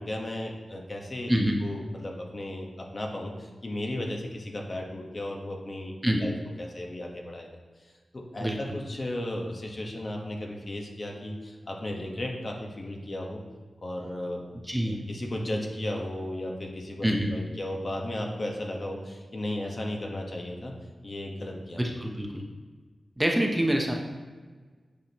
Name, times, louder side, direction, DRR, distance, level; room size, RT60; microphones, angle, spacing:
voice 1, 0.0-1.3 1.6-7.5 7.8-13.4 13.8-14.4 14.8-20.7 21.0-21.8, left 1 dB, 40° left, 1 dB, 1.2 m, -35 dB
voice 2, 8.4-8.8 14.7-15.0 17.0-17.3 21.8-22.4 23.2-23.9, equal, 10° right, 1 dB, 0.8 m, -26 dB
8.6 x 6.2 x 2.9 m, 1.5 s
wide cardioid pair, 95°, 0 cm